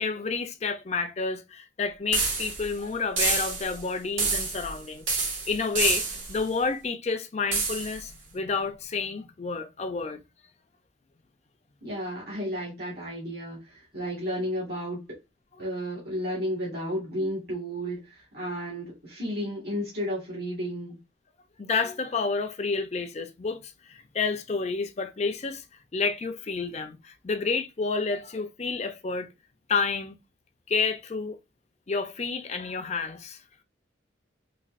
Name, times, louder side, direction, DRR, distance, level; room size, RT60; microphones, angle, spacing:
voice 1, 0.0-10.2 21.6-25.6 25.9-29.3 29.7-30.2 30.7-31.4 31.9-33.4, left 4 dB, 35° left, 0.5 m, -30 dB
sound 1, 2.1-2.7 3.2-3.8 4.2-4.8 5.1-6.4 7.5-8.0, right 4 dB, 85° right, 1.7 m, -28 dB
voice 2, 11.8-15.1 15.6-21.0, equal, 50° right, 1.7 m, -33 dB
4.1 x 2.7 x 2.5 m
head